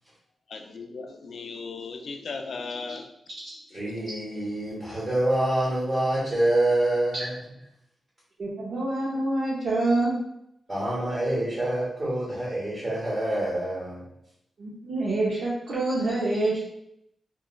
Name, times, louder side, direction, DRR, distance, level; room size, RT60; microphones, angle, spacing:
voice 1, 0.5-3.1 3.4-4.1, left 4 dB, 65° left, 4 dB, 0.3 m, -38 dB
voice 2, 3.7-7.4 10.7-14.0, right 1 dB, 20° right, -7 dB, 1.0 m, -26 dB
voice 3, 8.4-10.2 14.6-16.6, right 2 dB, 60° right, -7 dB, 0.6 m, -26 dB
3.0 x 2.3 x 2.3 m, 0.78 s
wide cardioid pair, 145°, 0 cm